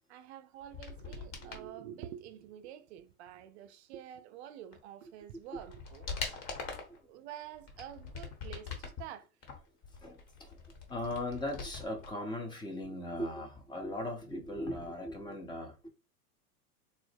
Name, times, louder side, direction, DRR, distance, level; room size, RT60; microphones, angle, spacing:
voice 1, 0.1-6.1 7.1-9.3, right 10 dB, 45° right, 0.5 m, -48 dB
sound 1, 0.6-1.7 4.7-4.8 5.3-7.0 7.5-9.0 9.4-12.1 12.4-12.5, left 4 dB, 35° left, 1.1 m, -43 dB
voice 2, 10.0-10.5 10.9-15.7, left 1 dB, 10° left, 0.6 m, -38 dB
4.0 x 2.0 x 3.3 m
hypercardioid pair, 100°, 46 cm